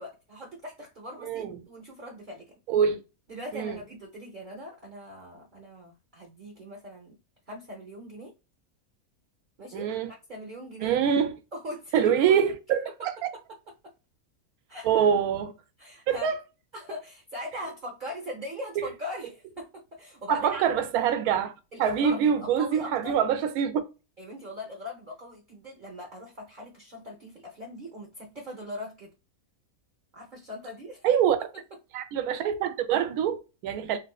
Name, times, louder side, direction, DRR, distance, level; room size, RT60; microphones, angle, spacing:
voice 1, 0.0-2.5 3.3-7.2 7.5-8.3 9.6-11.0 11.5-12.4 14.7-14.9 15.8-16.3 16.7-20.6 21.7-23.2 24.2-29.1 30.1-31.0, equal, 40° right, 0.8 m, -40 dB
voice 2, 1.2-1.6 2.7-3.0 3.5-3.8 9.7-10.1 10.8-11.3 11.9-13.1 14.8-15.5 16.1-16.4 18.8-18.9 20.3-21.5 21.8-23.8 31.0-31.4 31.9-34.0, right 8 dB, 75° right, 1.1 m, -25 dB
3.7 x 2.5 x 2.3 m
omnidirectional pair, 1.6 m